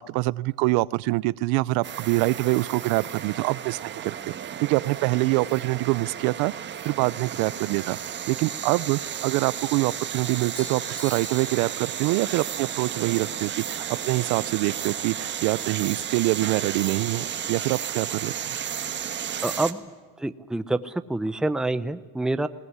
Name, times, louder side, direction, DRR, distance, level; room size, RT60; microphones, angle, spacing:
voice 1, 0.0-4.1 4.6-6.5 6.8-18.5, right 21 dB, 75° right, 22 dB, 0.6 m, -25 dB
sound 1, 1.8-19.7, right 9 dB, 30° right, 1.5 m, -33 dB
Doorbell, 10.3-12.5, left 2 dB, 25° left, 4.0 m, -45 dB
voice 2, 19.4-19.8 20.2-22.5, right 2 dB, ahead, 11 dB, 0.6 m, -27 dB
21.0 x 19.0 x 9.6 m, 1.4 s
cardioid pair, 145°, 37 cm